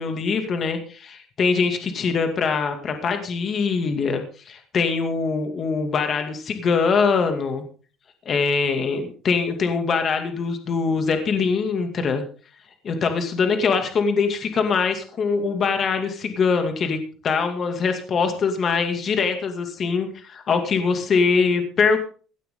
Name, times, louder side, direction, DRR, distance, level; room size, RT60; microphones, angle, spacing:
voice 1, 0.0-7.6 8.3-12.2 12.8-17.0 17.2-22.0, left 5 dB, 40° left, 6 dB, 2.4 m, -23 dB
17.0 x 12.5 x 3.8 m, 0.39 s
cardioid pair, 135°, 0 cm